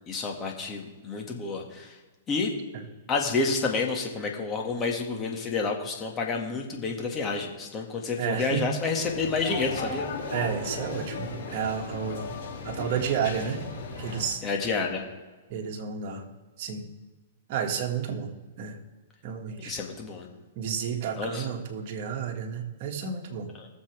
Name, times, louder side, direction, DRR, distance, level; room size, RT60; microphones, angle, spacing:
voice 1, 0.1-2.0 2.3-2.5 3.1-10.1 14.4-15.0 19.6-20.3 21.2-21.5 23.6-23.7, left 4 dB, 25° left, 1 dB, 2.0 m, -29 dB
voice 2, 8.2-8.6 10.3-12.4 12.6-13.6 14.0-14.4 15.5-16.2 16.6-16.9 17.5-18.8 19.2-19.7 20.6-23.5, right 7 dB, 50° right, 2 dB, 2.0 m, -31 dB
sound 1, 8.9-14.3, left 4 dB, 60° left, 4.3 m, -36 dB
20.5 x 7.4 x 3.5 m, 1.3 s
hypercardioid pair, 135°, 0 cm